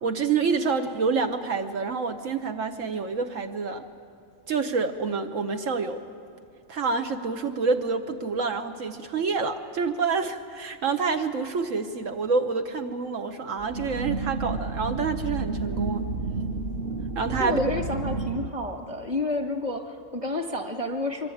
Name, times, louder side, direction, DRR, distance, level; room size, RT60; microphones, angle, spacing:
voice 1, 0.0-3.9 4.5-6.0 6.7-16.0 17.1-17.6, right 4 dB, 75° right, 6 dB, 1.3 m, -27 dB
sound 1, 13.6-18.5, right 3 dB, 50° right, 1.0 m, -31 dB
voice 2, 17.4-21.3, left 2 dB, 25° right, 4 dB, 2.0 m, -30 dB
25.5 x 23.0 x 9.2 m, 2.3 s
omnidirectional pair, 1.4 m